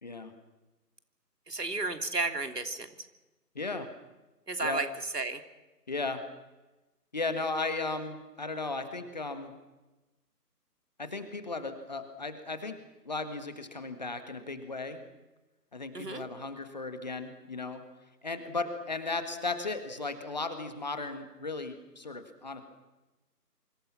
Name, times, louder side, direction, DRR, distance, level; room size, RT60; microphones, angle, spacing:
voice 1, 0.0-0.3 3.5-3.9 4.6-4.8 5.9-6.2 7.1-9.5 11.0-12.8 13.0-15.0 15.7-17.8 18.2-22.6, left 3 dB, 25° left, 9 dB, 1.7 m, -35 dB
voice 2, 1.5-2.9 4.5-4.9 5.1-5.4 15.9-16.2, right 3 dB, 70° right, 8 dB, 3.1 m, -32 dB
27.0 x 25.0 x 5.9 m, 1.1 s
figure-of-eight pair, 160°, 49 cm